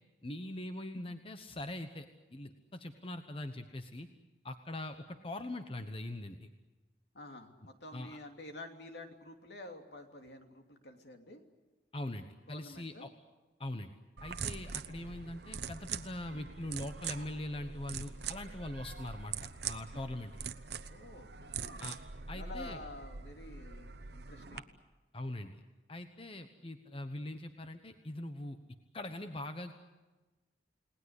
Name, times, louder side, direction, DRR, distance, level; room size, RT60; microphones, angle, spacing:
voice 1, 0.2-4.1 4.4-6.5 7.9-8.2 11.9-13.1 13.6-13.9 14.2-20.3 21.8-22.0 22.3-22.8 25.1-25.6 25.9-28.6 28.9-29.7, left 1 dB, 30° left, 8 dB, 1.1 m, -42 dB
voice 2, 7.1-11.4 12.5-13.1 20.9-21.8 22.3-24.6, left 2 dB, 65° left, 5 dB, 2.9 m, -49 dB
sound 1, 14.2-24.6, right 6 dB, 65° right, 1.0 m, -43 dB
30.0 x 19.0 x 8.3 m, 1.2 s
head